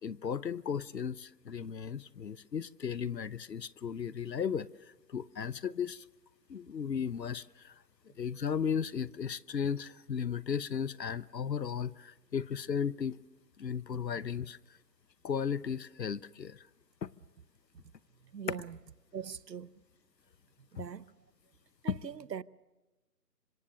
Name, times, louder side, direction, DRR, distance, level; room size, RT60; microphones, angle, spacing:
voice 1, 0.0-4.7 5.1-6.0 6.5-7.7 8.2-13.2 13.6-14.6 15.2-16.6 17.0-17.1 21.9-22.0, left 7 dB, 80° left, 0.9 m, -35 dB
voice 2, 18.3-18.8 19.1-19.7 20.8-21.0 21.8-22.4, right 8 dB, 80° right, 0.9 m, -41 dB
26.5 x 25.5 x 6.5 m
figure-of-eight pair, 160°, 49 cm